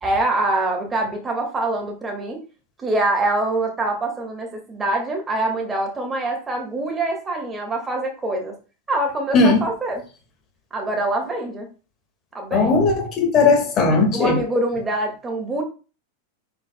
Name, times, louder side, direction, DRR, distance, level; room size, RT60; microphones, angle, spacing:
voice 1, 0.0-2.4 2.8-8.5 8.9-10.0 10.7-11.7 12.3-12.8 14.1-15.6, right 2 dB, 15° right, 2.2 m, -24 dB
voice 2, 12.5-14.4, left 3 dB, 30° left, 2.0 m, -17 dB
10.0 x 5.3 x 2.3 m
figure-of-eight pair, 90°, 0 cm